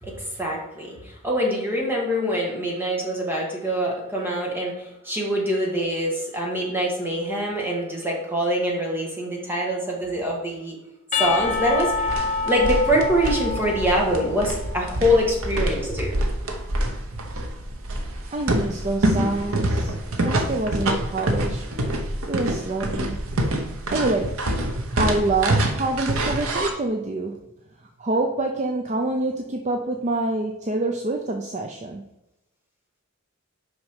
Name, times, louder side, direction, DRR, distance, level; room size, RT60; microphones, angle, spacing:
voice 1, 0.0-10.8 11.2-16.2, equal, 10° right, -2 dB, 1.6 m, -24 dB
Percussion / Church bell, 11.1-15.0, left 4 dB, 35° left, 0.9 m, -27 dB
sound 1, 11.3-26.7, right 1 dB, 70° right, 0.9 m, -26 dB
voice 2, 18.3-19.9 20.2-21.6 22.2-23.2 23.9-24.5 25.0-27.4 28.0-32.0, right 2 dB, 30° right, 3 dB, 0.5 m, -26 dB
6.1 x 5.5 x 4.9 m, 0.91 s
head